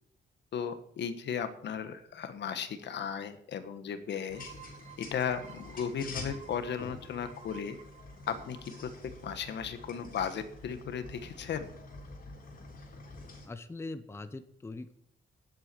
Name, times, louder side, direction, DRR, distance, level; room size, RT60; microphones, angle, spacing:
voice 1, 0.5-4.5 5.0-7.8 8.3-8.9 9.2-11.7, left 7 dB, 70° left, 10 dB, 1.3 m, -36 dB
sound 1, 4.3-13.5, left 3 dB, 50° left, 3.5 m, -47 dB
sound 2, 4.3-9.8, right 7 dB, 40° right, 1.4 m, -54 dB
voice 2, 13.4-14.9, left 2 dB, 15° left, 10 dB, 0.7 m, -41 dB
10.5 x 8.1 x 6.9 m, 0.67 s
wide cardioid pair, 170°, 19 cm